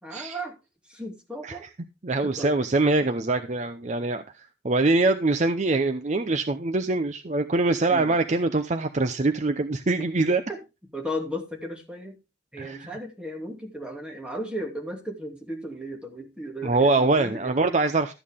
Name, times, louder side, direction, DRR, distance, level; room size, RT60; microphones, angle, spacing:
voice 1, 0.0-0.5 0.9-1.7 2.2-2.5 7.9-8.2 10.5-10.6 10.9-12.2 12.5-17.6, equal, 5° right, 1 dB, 2.6 m, -35 dB
voice 2, 2.0-10.4 12.6-12.9 16.6-18.1, right 3 dB, 40° right, 7 dB, 0.7 m, -24 dB
13.0 x 8.6 x 3.6 m, 0.27 s
head